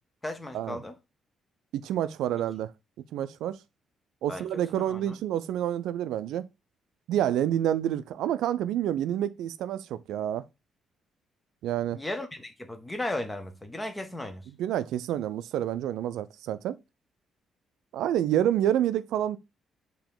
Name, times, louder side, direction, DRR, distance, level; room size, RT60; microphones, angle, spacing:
voice 1, 0.2-0.9 4.3-5.1 11.9-14.5, left 1 dB, 15° left, 0.8 m, -36 dB
voice 2, 1.7-2.7 3.1-3.6 4.2-6.5 7.1-10.4 11.6-12.0 14.6-16.8 17.9-19.4, right 11 dB, 85° right, 0.3 m, -28 dB
4.8 x 2.8 x 3.7 m
cardioid pair, 90°, 0 cm